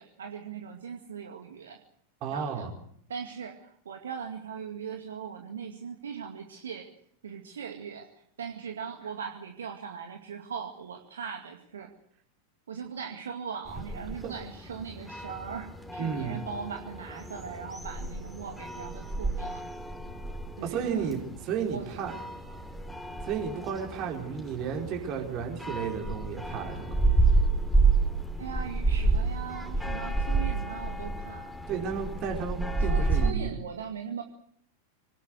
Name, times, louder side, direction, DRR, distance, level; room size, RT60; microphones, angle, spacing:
voice 1, 0.0-1.8 2.3-2.7 3.1-6.9 7.2-11.9 12.7-19.6 20.6-21.1 21.7-22.0 28.4-31.5 32.9-34.2, right 6 dB, 65° right, 4 dB, 2.2 m, -39 dB
voice 2, 2.2-2.7 14.2-14.3 16.0-16.4 20.6-22.1 23.2-27.0 31.7-33.5, right 6 dB, 40° right, 1 dB, 4.9 m, -33 dB
sound 1, 13.7-33.3, right 3 dB, ahead, 3.2 m, -30 dB
25.0 x 19.0 x 8.2 m, 0.65 s
figure-of-eight pair, 90°, 0 cm